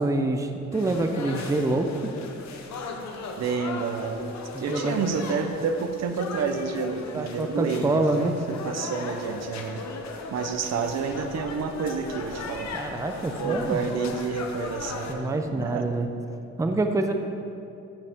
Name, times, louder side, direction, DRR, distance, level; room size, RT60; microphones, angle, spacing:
voice 1, 0.0-2.1 4.5-5.0 7.1-8.4 12.7-13.8 15.1-16.1 16.6-17.1, right 2 dB, 10° right, 5 dB, 0.5 m, -26 dB
sound 1, 0.7-15.1, left 4 dB, 65° left, 1.0 m, -37 dB
voice 2, 3.4-4.3 4.6-9.8 10.3-12.7 13.4-15.9, right 5 dB, 60° right, 7 dB, 0.7 m, -29 dB
13.5 x 5.4 x 3.6 m, 2.6 s
cardioid pair, 90°, 30 cm